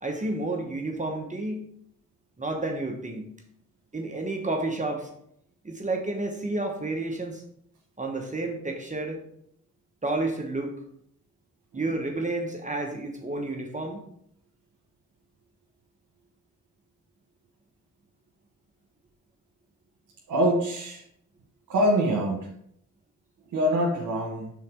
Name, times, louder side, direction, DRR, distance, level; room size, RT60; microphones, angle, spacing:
voice 1, 0.0-1.6 2.4-3.3 3.9-5.1 5.6-7.4 8.0-9.2 10.0-10.7 11.7-14.0, right 2 dB, 25° right, 2 dB, 1.1 m, -30 dB
voice 2, 20.3-21.0 21.7-22.5 23.5-24.5, equal, 85° right, -1 dB, 1.2 m, -24 dB
5.7 x 4.1 x 4.5 m, 0.70 s
cardioid pair, 60°, 31 cm